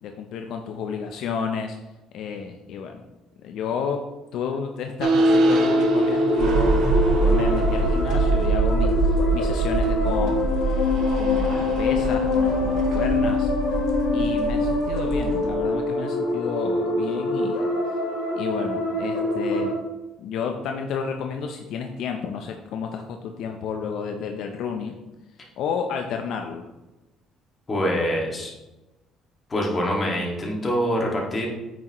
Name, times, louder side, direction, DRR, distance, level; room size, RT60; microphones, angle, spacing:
voice 1, 0.0-1.8 2.1-3.0 3.4-4.0 4.3-6.8 7.2-10.5 11.1-13.5 14.1-17.6 18.4-19.8 20.2-25.0 25.6-26.7, left 6 dB, 65° left, 4 dB, 0.6 m, -31 dB
sound 1, 5.0-15.5, right 2 dB, 60° right, 1.1 m, -23 dB
sound 2, 5.2-19.7, left 2 dB, 90° left, 2.2 m, -25 dB
voice 2, 27.7-28.5 29.5-31.5, equal, 25° left, -2 dB, 2.0 m, -25 dB
8.5 x 6.2 x 3.1 m, 1.0 s
cardioid pair, 125°, 0 cm